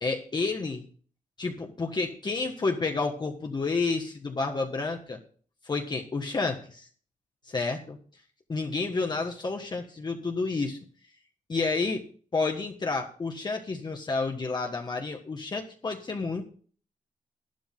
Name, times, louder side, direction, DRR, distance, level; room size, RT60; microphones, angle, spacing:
voice 1, 0.0-0.8 1.4-5.2 5.6-6.9 7.5-8.0 8.5-10.8 11.5-12.0 12.3-16.4, left 3 dB, 35° left, 2 dB, 1.5 m, -30 dB
12.0 x 12.0 x 3.8 m, 0.43 s
wide cardioid pair, 140°, 13 cm